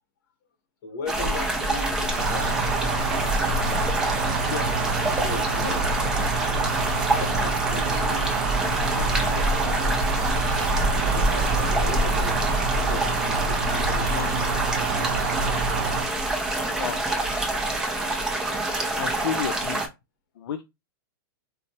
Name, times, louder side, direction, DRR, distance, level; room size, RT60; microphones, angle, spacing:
voice 1, 0.8-2.5 5.2-5.8 7.2-8.3 9.0-10.0 10.3-10.5 11.1-12.4 12.7-14.4, left 3 dB, 50° left, 1.1 m, -37 dB
sound 1, 1.1-19.9, right 1 dB, 5° right, 0.3 m, -26 dB
Cricket, 2.2-16.0, right 5 dB, 60° right, 0.7 m, -28 dB
voice 2, 19.0-19.9 20.4-20.6, left 9 dB, 80° left, 0.4 m, -31 dB
4.2 x 2.0 x 2.7 m
supercardioid pair, 170°, 12 cm